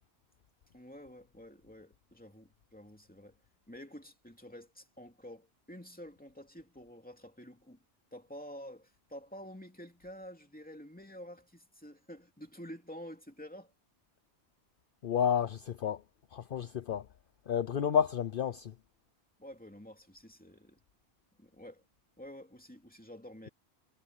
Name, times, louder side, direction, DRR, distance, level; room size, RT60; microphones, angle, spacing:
voice 1, 0.7-3.4 3.7-7.8 8.1-13.7 19.4-20.8 21.4-21.8 22.2-23.5, equal, 10° left, 2.7 m, -49 dB
voice 2, 15.0-16.0 16.3-17.1 17.5-18.7, left 8 dB, 60° left, 0.9 m, -30 dB
omnidirectional pair, 1.1 m